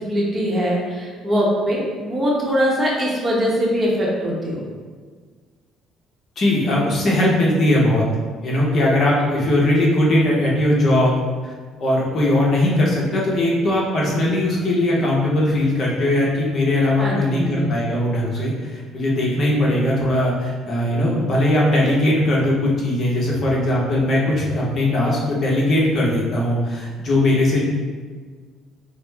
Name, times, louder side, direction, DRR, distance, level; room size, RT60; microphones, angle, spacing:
voice 1, 0.0-4.7 17.0-17.7, equal, 25° right, -3 dB, 0.9 m, -22 dB
voice 2, 6.4-8.1 8.4-11.2 11.4-11.5 11.8-27.6, left 1 dB, 40° left, -4 dB, 0.9 m, -19 dB
5.1 x 2.1 x 3.4 m, 1.5 s
cardioid pair, 130°, 0 cm